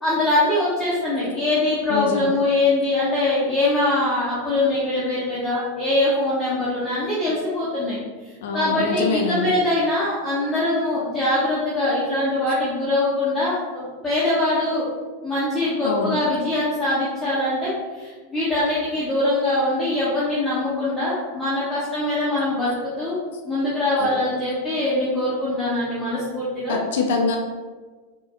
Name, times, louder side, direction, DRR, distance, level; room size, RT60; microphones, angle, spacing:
voice 1, 0.0-8.0 8.2-14.8 15.2-26.8, left 2 dB, 5° left, -11 dB, 0.9 m, -23 dB
voice 2, 1.9-2.3 8.4-9.5 15.8-16.2 24.0-24.1 26.7-27.4, left 4 dB, 55° left, 2 dB, 0.5 m, -24 dB
3.9 x 2.3 x 2.9 m, 1.4 s
figure-of-eight pair, 90°, 0 cm